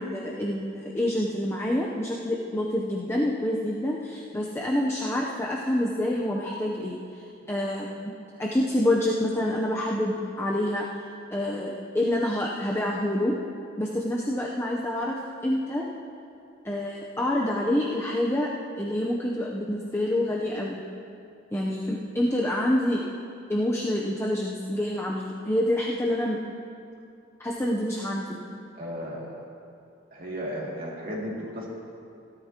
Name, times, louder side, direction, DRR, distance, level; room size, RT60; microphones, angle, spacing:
voice 1, 0.0-7.0 7.5-8.1 8.4-10.9 11.3-13.3 13.8-15.8 16.6-18.5 18.8-20.8 21.5-23.0 23.5-26.4 27.4-28.4, left 1 dB, 15° left, -3 dB, 0.7 m, -27 dB
voice 2, 28.7-29.4 30.1-31.7, equal, 50° right, -4 dB, 2.5 m, -34 dB
17.0 x 13.0 x 2.9 m, 2.5 s
head